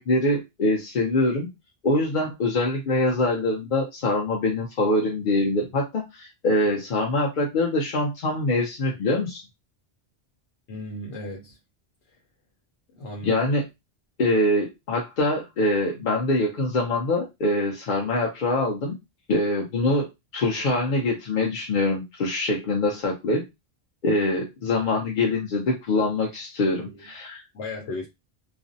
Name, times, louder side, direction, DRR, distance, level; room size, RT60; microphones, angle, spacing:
voice 1, 0.0-1.5 1.8-9.4 13.2-13.6 14.2-19.0 19.3-20.1 20.3-23.5 24.0-27.4, left 2 dB, 55° left, 0.6 m, -24 dB
voice 2, 10.7-11.6 12.1-12.2 13.0-13.4 26.8-26.9 27.5-28.1, left 2 dB, 90° left, 0.9 m, -35 dB
2.5 x 2.0 x 2.6 m
omnidirectional pair, 1.1 m